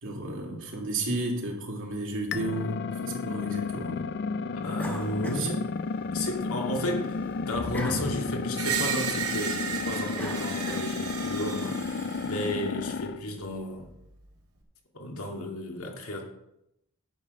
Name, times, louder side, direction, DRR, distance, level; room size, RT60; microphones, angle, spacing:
voice 1, 0.0-4.2 5.2-5.6, right 2 dB, 60° right, -1 dB, 2.7 m, -33 dB
sound 1, 2.3-13.2, left 4 dB, 50° left, 0.4 m, -32 dB
voice 2, 4.6-5.6 6.1-13.9 14.9-16.2, left 1 dB, 75° left, 1 dB, 2.2 m, -33 dB
sound 2, 4.8-6.3 6.7-11.3, equal, 10° left, 1.7 m, -40 dB
Screech, 8.6-12.6, right 7 dB, 90° right, 2.5 m, -33 dB
10.5 x 7.4 x 5.3 m, 0.84 s
head